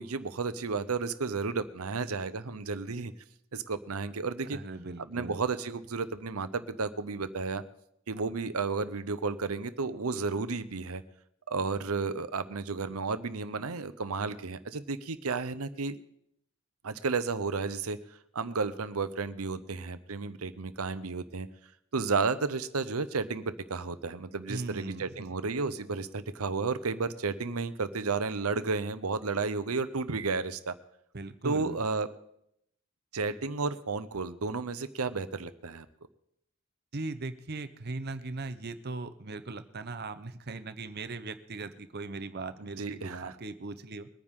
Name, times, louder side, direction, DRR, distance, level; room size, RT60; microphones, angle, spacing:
voice 1, 0.0-3.1 3.5-4.6 5.1-7.6 8.1-11.0 11.5-16.0 16.8-18.0 18.3-21.5 21.9-30.7 31.4-32.1 33.1-35.9 42.8-43.3, right 4 dB, 85° right, 12 dB, 0.8 m, -32 dB
voice 2, 4.5-5.4 24.5-25.3 31.1-31.8 36.9-44.1, right 3 dB, 45° right, 11 dB, 0.8 m, -39 dB
22.5 x 9.7 x 3.7 m, 0.75 s
head